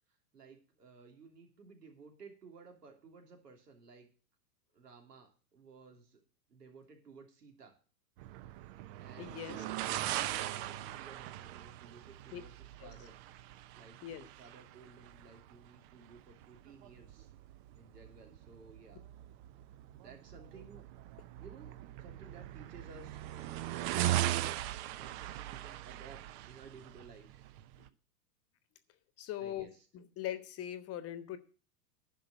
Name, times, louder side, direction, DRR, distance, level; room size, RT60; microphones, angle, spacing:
voice 1, 0.3-4.1 4.7-6.2 6.5-7.8 9.0-13.2 13.7-17.3 17.7-19.0 20.0-20.8 21.4-24.0 25.0-26.2 26.5-27.4 29.4-29.9, right 4 dB, 85° right, 3 dB, 3.2 m, -56 dB
sound 1, 8.2-27.9, right 13 dB, 40° right, 0.8 m, -40 dB
voice 2, 9.2-9.6 12.3-12.4 12.8-12.9 14.0-14.3 29.2-31.4, left 11 dB, 30° left, 12 dB, 1.2 m, -41 dB
10.5 x 5.6 x 7.8 m, 0.37 s
hypercardioid pair, 110°, 47 cm